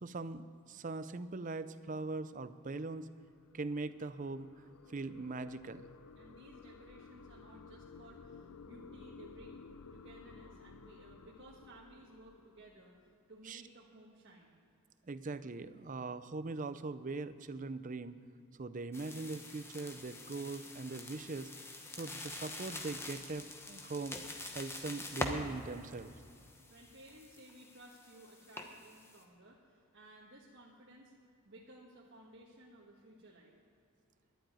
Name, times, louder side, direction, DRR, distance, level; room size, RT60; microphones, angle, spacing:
voice 1, 0.0-3.1 3.5-4.5 4.9-5.9 13.4-13.6 15.1-18.1 18.6-21.5 21.9-24.2 24.5-26.1, right 3 dB, 35° right, 13 dB, 0.5 m, -41 dB
sound 1, 2.6-13.2, left 4 dB, 80° left, 0.6 m, -55 dB
voice 2, 6.1-9.6 9.9-14.6 26.7-31.1 31.4-33.5, right 1 dB, 55° right, -4 dB, 1.4 m, -57 dB
sound 2, 18.9-29.2, left 2 dB, 10° left, 0.9 m, -45 dB
11.5 x 9.0 x 9.2 m, 2.6 s
head